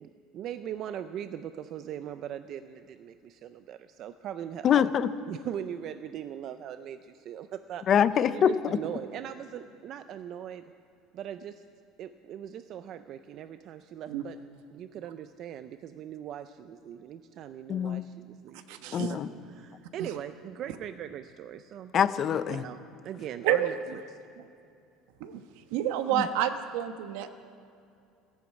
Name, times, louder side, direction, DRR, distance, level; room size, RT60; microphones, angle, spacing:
voice 1, 0.0-4.9 5.3-7.9 8.3-10.6 11.1-11.6 12.0-14.4 14.7-19.2 19.5-21.9 22.6-24.0, right 10 dB, 40° right, 11 dB, 0.5 m, -40 dB
voice 2, 4.6-5.1 7.9-8.5 17.7-18.0 18.9-19.3 21.9-22.6 26.1-26.2, left 9 dB, 30° left, 14 dB, 0.5 m, -24 dB
voice 3, 18.7-19.1 20.0-20.1 23.4-24.0 25.2-25.4 25.7-27.3, right 10 dB, 75° right, 9 dB, 1.1 m, -29 dB
15.0 x 11.0 x 8.5 m, 2.6 s
cardioid pair, 165°, 0 cm